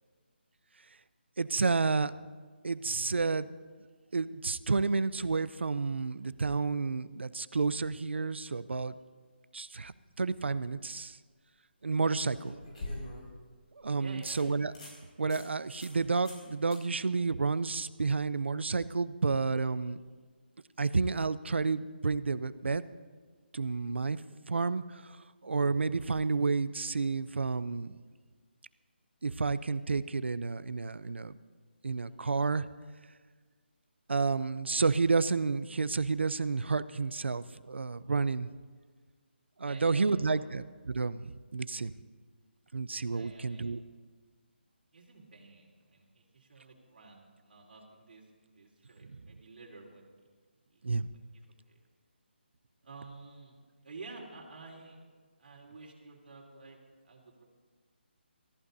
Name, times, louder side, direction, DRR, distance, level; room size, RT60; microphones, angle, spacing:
voice 1, 1.4-2.1 2.6-3.5 4.1-8.9 9.5-9.9 10.2-11.2 11.8-12.5 13.8-14.7 15.2-20.0 20.8-22.8 23.5-24.2 24.5-25.0 25.4-28.0 29.2-31.3 31.8-32.7 34.1-38.5 39.6-41.9 42.7-43.8 50.8-51.1, right 4 dB, 90° right, 16 dB, 0.6 m, -30 dB
sound 1, 10.6-10.7 12.1-13.4 13.8-13.9 14.2-14.4 14.7-15.0 15.3-15.4 15.8-16.0 16.2-16.4 16.7-16.8 19.9-20.0, left 1 dB, 40° left, 5.3 m, -43 dB
voice 2, 11.9-12.9 14.0-14.5 39.6-40.5 43.1-43.7 44.9-50.1 50.7-50.8 51.1-51.8 52.8-55.0 55.4-56.8 57.0-57.4, right 3 dB, 55° right, -2 dB, 3.5 m, -51 dB
23.0 x 14.5 x 2.7 m, 1.5 s
hypercardioid pair, 170°, 6 cm